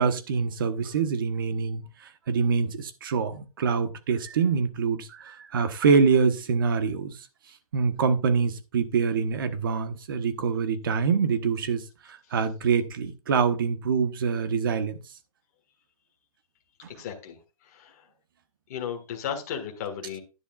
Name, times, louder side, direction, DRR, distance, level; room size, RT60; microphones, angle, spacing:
voice 1, 0.0-1.8 2.3-7.1 7.7-11.8 12.1-15.0, right 5 dB, 35° right, 1.1 m, -25 dB
voice 2, 16.9-18.1 18.7-20.2, left 8 dB, 25° left, 1.7 m, -35 dB
11.5 x 10.0 x 2.4 m
hypercardioid pair, 175°, 19 cm